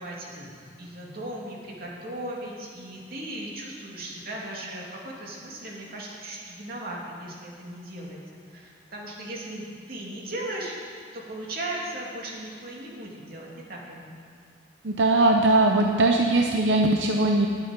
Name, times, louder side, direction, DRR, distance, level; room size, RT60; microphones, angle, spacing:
voice 1, 0.0-8.2 8.5-14.0, right 1 dB, 55° right, -3 dB, 2.7 m, -37 dB
voice 2, 14.8-17.5, right 2 dB, 80° right, 3 dB, 0.7 m, -20 dB
19.5 x 8.4 x 5.3 m, 2.3 s
head